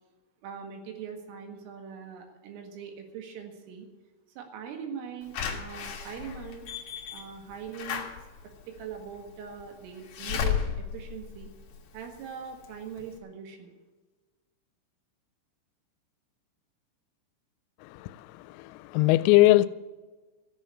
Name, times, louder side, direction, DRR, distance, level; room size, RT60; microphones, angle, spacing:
voice 1, 0.4-3.9 4.4-6.7 7.1-8.1 8.7-11.5 11.9-13.7, right 7 dB, 75° right, 4.3 m, -41 dB
Slam / Alarm, 5.3-12.2 12.6-12.7 13.0-13.1, left 8 dB, 65° left, 2.0 m, -34 dB
voice 2, 17.8-19.7, left 17 dB, 90° left, 3.3 m, -22 dB
14.0 x 7.7 x 9.6 m
omnidirectional pair, 6.0 m